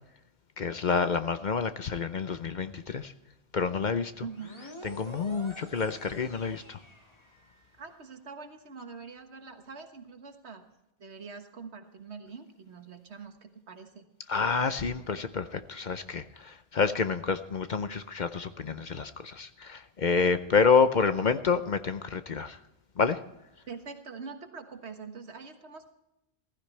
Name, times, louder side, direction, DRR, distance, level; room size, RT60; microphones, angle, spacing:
voice 1, 0.6-3.1 3.5-4.1 4.8-6.8 14.3-22.6 23.0-23.2, left 5 dB, 50° left, 11 dB, 0.7 m, -28 dB
sound 1, 4.3-7.8, left 1 dB, 25° left, 2.0 m, -48 dB
voice 2, 7.8-10.6 11.0-14.0 23.7-25.9, right 5 dB, 80° right, 6 dB, 1.7 m, -44 dB
15.5 x 15.0 x 3.3 m, 0.91 s
omnidirectional pair, 1.1 m